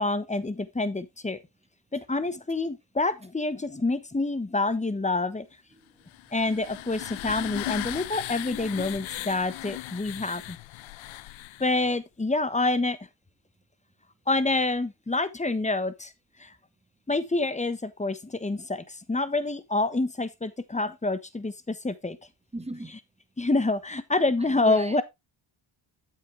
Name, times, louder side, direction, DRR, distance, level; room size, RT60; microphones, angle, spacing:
voice 1, 0.0-1.4 1.9-5.5 6.3-10.6 11.6-13.0 14.3-16.1 16.4-16.5 17.1-22.2 23.4-25.0, left 2 dB, 15° left, 1.2 m, -27 dB
voice 2, 5.7-6.1 6.4-6.7 7.1-7.2 7.6-7.9 22.5-23.0 24.4-25.0, right 2 dB, 15° right, 1.7 m, -41 dB
sound 1, 6.1-11.9, left 17 dB, 75° left, 0.6 m, -37 dB
8.3 x 7.9 x 3.3 m
cardioid pair, 65°, 48 cm